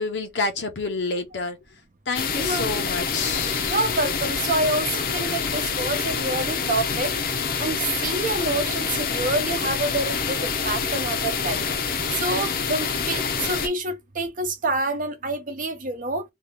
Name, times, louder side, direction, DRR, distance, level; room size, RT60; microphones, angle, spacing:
voice 1, 0.0-1.6 2.1-3.7, left 3 dB, 90° left, 0.8 m, -28 dB
sound 1, 2.1-13.7, left 5 dB, 55° left, 0.6 m, -26 dB
voice 2, 2.4-2.7 3.7-7.1 7.6-11.6 12.2-16.2, right 2 dB, 50° right, 0.7 m, -27 dB
2.7 x 2.4 x 3.3 m
head